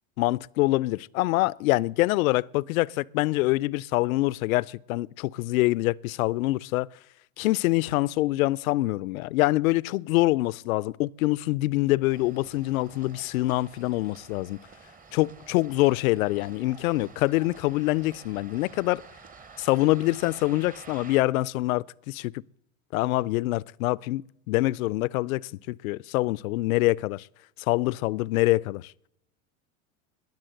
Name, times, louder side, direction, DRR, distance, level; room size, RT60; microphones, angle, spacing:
voice 1, 0.2-6.9 7.4-14.6 15.1-19.0 19.6-22.4 22.9-24.2 24.5-27.3 27.7-28.9, left 19 dB, 85° left, 0.5 m, -25 dB
sound 1, 12.1-21.2, right 5 dB, 20° right, 1.0 m, -50 dB
21.0 x 7.5 x 7.7 m
supercardioid pair, 115°, 41 cm